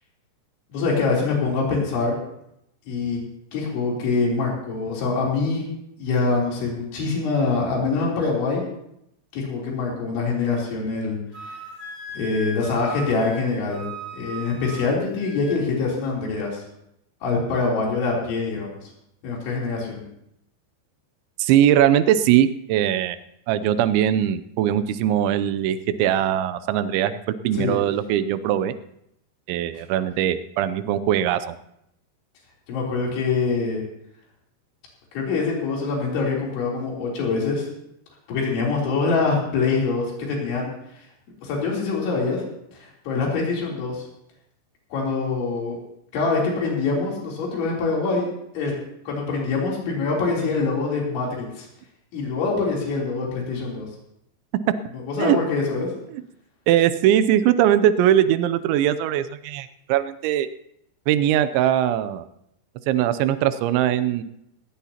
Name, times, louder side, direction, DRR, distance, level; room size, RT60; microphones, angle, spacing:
voice 1, 0.7-2.2 2.9-3.2 3.5-5.7 6.0-8.6 9.3-11.6 12.2-13.8 14.1-16.6 17.2-18.9 19.2-20.0 27.5-27.8 32.7-33.8 35.1-37.7 38.3-40.7 41.0-41.1 41.4-42.4 42.7-44.1 44.9-45.8 46.1-48.3 48.5-48.7 49.1-51.7 52.1-53.9 55.1-55.9, left 4 dB, 90° left, -3 dB, 5.9 m, -24 dB
Wind instrument woodwind instrument, 11.3-15.6, right 1 dB, 10° right, 2.9 m, -38 dB
voice 2, 21.4-23.2 23.5-27.2 27.4-28.7 29.5-31.6 55.2-55.4 56.1-56.2 56.7-60.5 61.1-62.3 62.9-64.2, right 11 dB, 90° right, 12 dB, 3.1 m, -20 dB
18.5 x 18.0 x 2.9 m, 0.78 s
omnidirectional pair, 5.2 m